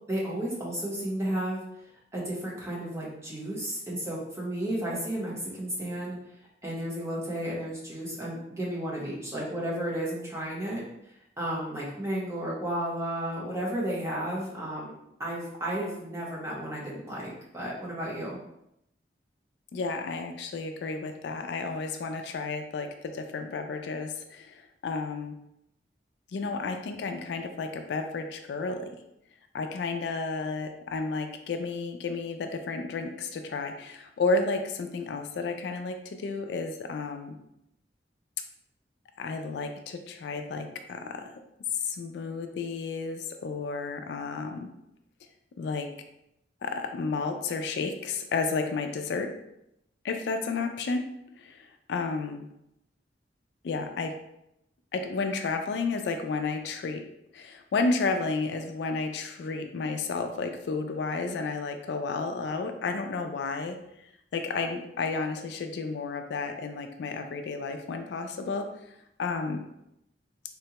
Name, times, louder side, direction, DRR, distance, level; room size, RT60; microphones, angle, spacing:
voice 1, 0.1-1.6 2.1-6.2 6.6-18.4, right 1 dB, 15° right, -6 dB, 0.8 m, -33 dB
voice 2, 19.7-25.3 26.3-28.9 29.5-37.4 39.2-41.3 41.7-44.7 45.6-45.9 46.6-49.3 50.0-51.0 51.4-52.5 53.6-54.1 54.9-57.0 57.3-63.8 64.3-69.6, left 4 dB, 70° left, 6 dB, 0.3 m, -32 dB
3.6 x 2.2 x 2.8 m, 0.81 s
head